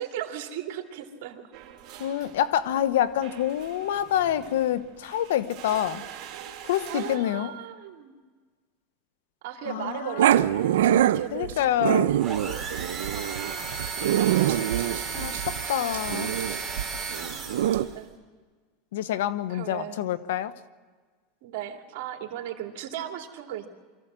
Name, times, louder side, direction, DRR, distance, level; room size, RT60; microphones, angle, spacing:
voice 1, 0.0-1.4 6.9-8.1 9.4-13.7 14.4-15.1 17.1-17.6 17.9-18.1 19.5-20.0 21.4-23.7, right 10 dB, 65° right, 3 dB, 2.7 m, -37 dB
sound 1, 1.5-7.2, right 10 dB, 45° right, 2.5 m, -44 dB
voice 2, 2.0-6.0 6.6-7.5 9.7-10.2 10.6-11.0 11.3-12.1 15.1-16.3 18.9-20.5, left 11 dB, 85° left, 14 dB, 1.0 m, -27 dB
Growling, 10.2-17.9, right 12 dB, 85° right, 0.7 m, -24 dB
sound 2, 12.2-18.0, right 4 dB, 15° right, 4.1 m, -34 dB
24.5 x 14.5 x 7.6 m, 1.5 s
supercardioid pair, 135°, 0 cm